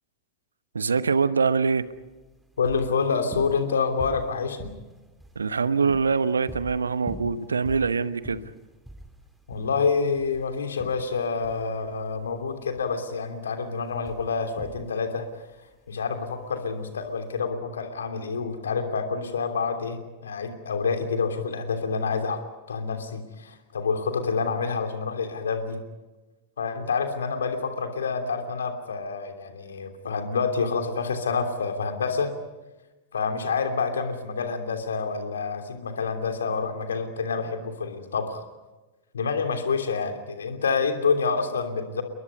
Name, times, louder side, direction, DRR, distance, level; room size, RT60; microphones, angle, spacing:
voice 1, 0.7-1.9 5.3-8.5, right 5 dB, 75° right, 1.0 m, -24 dB
sound 1, 1.8-17.4, right 1 dB, 5° right, 3.6 m, -45 dB
voice 2, 2.6-4.7 9.5-15.5 15.9-22.4 22.7-25.8 26.6-32.3 33.1-38.4 39.1-42.0, left 5 dB, 70° left, 3.1 m, -28 dB
29.5 x 22.0 x 5.3 m
figure-of-eight pair, 90°, 0 cm